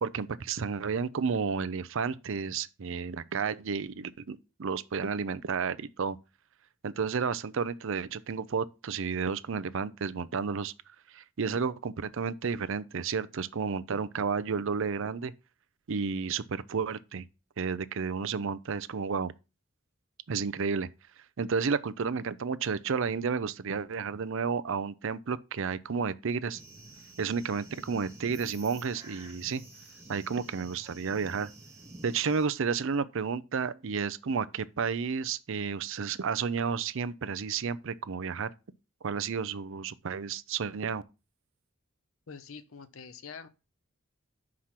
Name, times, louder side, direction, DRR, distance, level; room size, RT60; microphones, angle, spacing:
voice 1, 0.0-6.2 6.8-10.7 11.1-15.3 15.9-17.3 17.6-19.3 20.3-20.9 21.4-26.6 27.2-29.6 30.1-31.5 32.0-38.5 39.0-41.0, right 5 dB, 70° right, 0.5 m, -31 dB
sound 1, 26.5-32.5, right 2 dB, 15° right, 3.1 m, -50 dB
voice 2, 42.3-43.5, left 6 dB, 80° left, 0.8 m, -45 dB
5.9 x 4.9 x 5.7 m
head